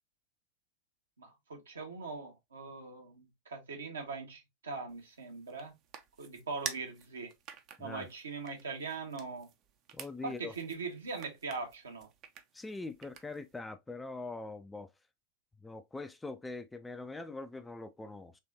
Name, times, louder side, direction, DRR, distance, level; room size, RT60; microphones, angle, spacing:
voice 1, 1.2-5.7 6.2-7.3 7.8-9.5 10.2-12.1, right 4 dB, 70° right, 1.3 m, -41 dB
sound 1, 4.9-13.6, right 8 dB, 35° right, 0.6 m, -49 dB
voice 2, 9.9-10.5 12.5-14.9 15.6-18.4, left 3 dB, 10° left, 0.4 m, -43 dB
4.2 x 3.0 x 2.7 m
figure-of-eight pair, 90°, 0 cm